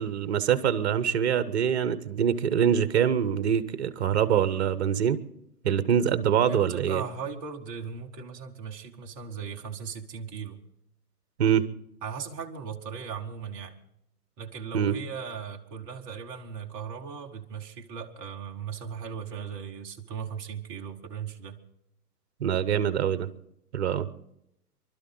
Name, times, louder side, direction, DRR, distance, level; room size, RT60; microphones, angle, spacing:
voice 1, 0.0-5.2 5.6-7.0 11.4-11.7 14.7-15.0 22.4-23.3 23.7-24.1, right 8 dB, 45° right, 15 dB, 0.9 m, -24 dB
voice 2, 6.4-10.6 12.0-13.8 14.4-21.6, right 6 dB, 15° right, 1 dB, 0.7 m, -38 dB
24.5 x 12.0 x 3.9 m, 0.79 s
figure-of-eight pair, 135°, 47 cm